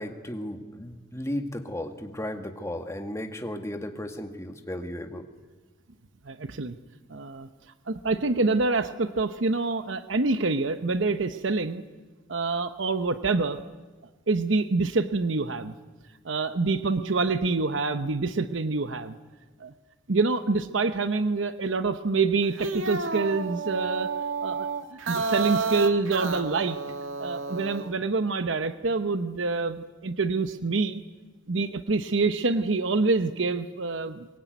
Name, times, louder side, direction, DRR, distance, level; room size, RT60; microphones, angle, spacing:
voice 1, 0.0-5.3, left 1 dB, 15° left, 5 dB, 2.0 m, -35 dB
voice 2, 6.2-6.7 7.1-7.5 7.9-11.8 12.3-13.6 14.3-15.7 16.2-19.1 19.6-19.7 20.1-24.1 24.4-24.7 25.1-26.8 27.2-31.0 31.5-34.3, right 3 dB, 70° right, 10 dB, 0.9 m, -26 dB
sound 1, 22.4-27.9, right 4 dB, 85° right, 1.8 m, -31 dB
23.0 x 22.0 x 9.3 m, 1.3 s
head